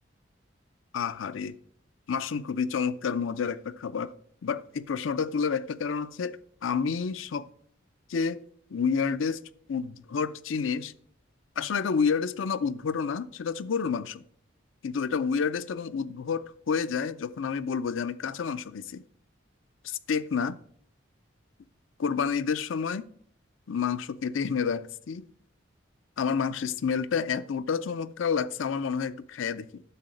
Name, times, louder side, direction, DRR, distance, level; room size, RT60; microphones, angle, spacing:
voice 1, 0.9-1.5 2.1-4.1 4.4-7.5 8.1-8.4 8.7-9.4 9.7-10.9 11.6-14.2 14.8-19.0 19.8-20.6 22.0-23.0 23.7-25.3 26.2-29.8, left 6 dB, 85° left, 0.5 m, -29 dB
10.0 x 6.5 x 5.0 m
head